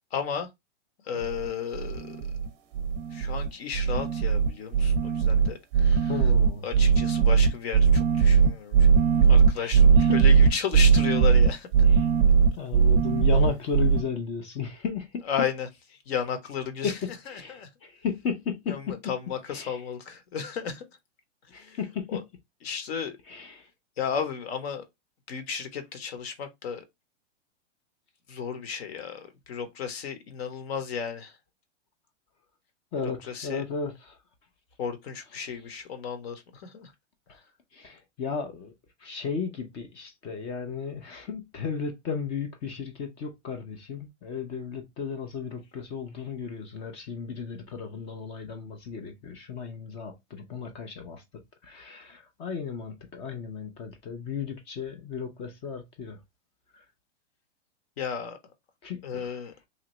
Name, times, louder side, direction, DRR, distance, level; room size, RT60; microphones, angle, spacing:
voice 1, 0.1-0.5 1.0-2.2 3.1-6.2 6.6-9.0 9.3-11.7 15.3-15.7 16.1-17.0 17.3-17.7 18.7-20.9 21.5-21.8 22.1-22.2 22.6-23.1 24.0-24.8 25.3-26.8 28.3-31.4 33.0-33.6 34.8-36.9 58.0-58.4 59.0-59.5, left 7 dB, 55° left, 1.0 m, -34 dB
sound 1, 1.2-1.5 1.7-2.5 2.7-3.5 3.7-14.0, right 6 dB, 35° right, 0.6 m, -20 dB
voice 2, 5.9-6.7 9.6-10.2 11.9-12.1 12.6-15.2 16.8-16.9 17.3-19.0 19.5-19.8 21.5-22.2 23.3-23.6 32.9-34.2 37.7-38.7 39.0-51.2 51.6-56.2 58.8-59.4, left 6 dB, 20° left, 0.3 m, -34 dB
2.9 x 2.4 x 3.0 m
hypercardioid pair, 130°, 36 cm